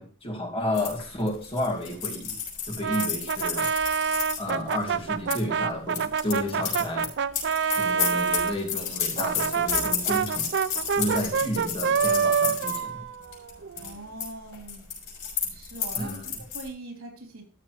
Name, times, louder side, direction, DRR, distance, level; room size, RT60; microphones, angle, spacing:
voice 1, 0.0-2.4 2.7-3.7 4.4-7.1 7.7-10.5 10.9-13.0 16.0-16.3, left 1 dB, 25° left, 0 dB, 2.3 m, -31 dB
sound 1, 0.7-5.4 5.9-12.8 13.2-13.5 13.8-14.3 14.5-16.7, left 7 dB, 60° left, 5.8 m, -31 dB
Brass instrument, 2.8-8.6 9.2-13.9, right 6 dB, 55° right, 0.5 m, -27 dB
voice 2, 13.8-14.9 15.5-16.2 16.5-17.4, right 1 dB, 80° right, 2 dB, 3.4 m, -41 dB
13.5 x 7.3 x 3.2 m, 0.40 s
head